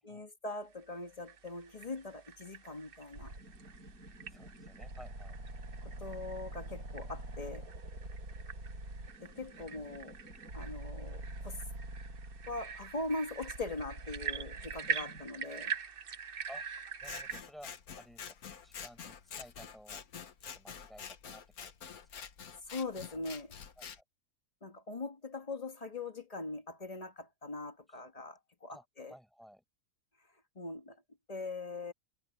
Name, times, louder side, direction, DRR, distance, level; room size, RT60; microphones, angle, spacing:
voice 1, 0.0-3.3 5.8-7.7 9.2-10.2 10.5-11.6 12.5-15.7 22.7-23.5 24.6-29.1 30.5-31.0 31.3-31.9, left 2 dB, 25° left, 1.6 m, -41 dB
sound 1, 1.0-17.4, right 6 dB, 45° right, 1.0 m, -44 dB
sound 2, 3.1-15.3, right 2 dB, 80° right, 7.4 m, -46 dB
voice 2, 4.3-5.4 16.5-16.7 17.0-17.7 18.0-20.0 20.4-22.3 23.1-23.3 23.8-24.0 27.9-28.0 28.7-29.6, equal, ahead, 7.7 m, -55 dB
Scissors, 17.0-24.0, left 7 dB, 80° left, 1.8 m, -47 dB
omnidirectional pair, 1.6 m